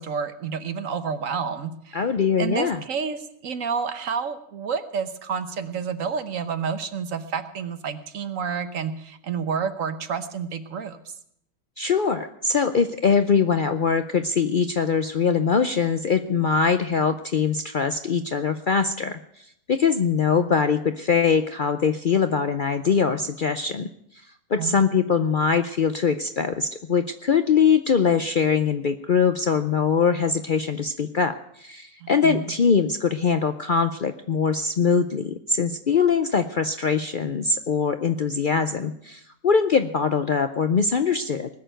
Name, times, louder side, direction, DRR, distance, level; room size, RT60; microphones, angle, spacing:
voice 1, 0.0-2.0 2.4-11.0 24.6-24.8 32.0-32.5, right 6 dB, 65° right, 10 dB, 1.4 m, -29 dB
voice 2, 1.9-2.8 11.8-19.2 19.7-23.9 24.5-41.5, left 6 dB, 50° left, 9 dB, 0.6 m, -22 dB
19.5 x 6.8 x 9.1 m, 0.73 s
omnidirectional pair, 1.5 m